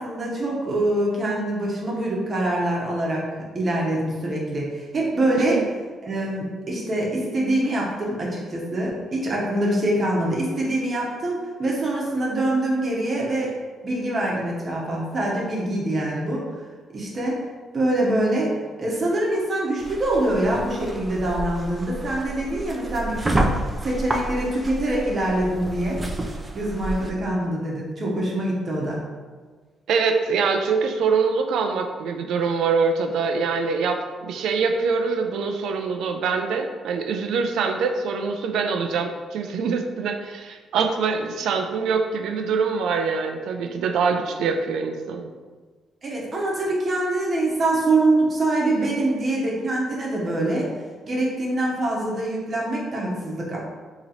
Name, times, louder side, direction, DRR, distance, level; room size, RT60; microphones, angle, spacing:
voice 1, 0.0-3.2 3.5-5.6 6.0-13.5 13.8-16.5 16.9-17.4 17.7-23.5 23.8-26.0 26.5-29.0 46.0-50.7 51.0-53.6, right 1 dB, 40° right, -3 dB, 0.9 m, -24 dB
sound 1, 19.8-27.1, right 1 dB, 20° right, 0.5 m, -29 dB
voice 2, 29.9-45.3, right 5 dB, 80° right, 5 dB, 0.4 m, -24 dB
2.9 x 2.9 x 4.0 m, 1.4 s
cardioid pair, 90°, 0 cm